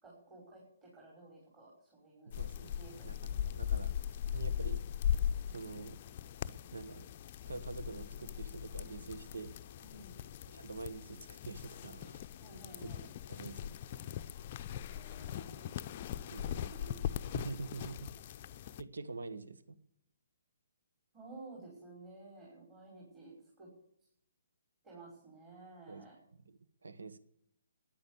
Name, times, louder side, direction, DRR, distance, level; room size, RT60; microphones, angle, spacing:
voice 1, 0.0-2.3 2.8-3.4 3.8-4.0 9.8-10.2 12.4-13.0 14.9-15.6 15.9-16.6 16.9-17.1 21.1-23.7 24.8-26.1, right 3 dB, 20° right, -6 dB, 5.8 m, -54 dB
sound 1, 2.3-18.8, left 10 dB, 35° left, 0.6 m, -39 dB
voice 2, 2.3-2.8 3.0-3.9 4.3-4.8 5.5-6.0 6.7-7.1 7.5-9.5 10.5-12.2 12.8-12.9 13.3-13.8 16.3-16.7 17.3-18.1 18.8-19.8 25.9-26.0 26.3-27.2, right 3 dB, 70° right, 12 dB, 1.2 m, -45 dB
13.5 x 10.5 x 8.2 m, 0.72 s
figure-of-eight pair, 135°, 0 cm